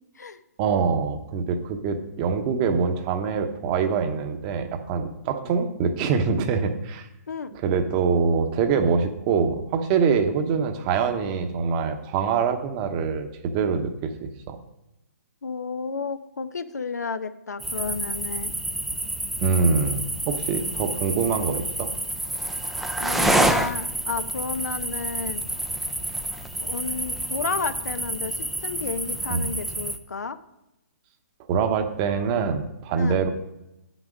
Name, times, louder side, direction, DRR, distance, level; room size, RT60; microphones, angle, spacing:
voice 1, 0.6-7.1 7.5-14.6 19.4-21.9 29.3-29.5 31.5-33.3, right 5 dB, 30° right, 8 dB, 0.8 m, -24 dB
voice 2, 15.4-18.5 23.0-25.4 26.6-30.4 32.9-33.2, left 4 dB, 90° left, 12 dB, 0.6 m, -32 dB
Grillen und Geräusche am Abend, 17.6-30.0, right 1 dB, ahead, 0.4 m, -28 dB
9.0 x 6.1 x 5.2 m, 0.92 s
hypercardioid pair, 145°, 9 cm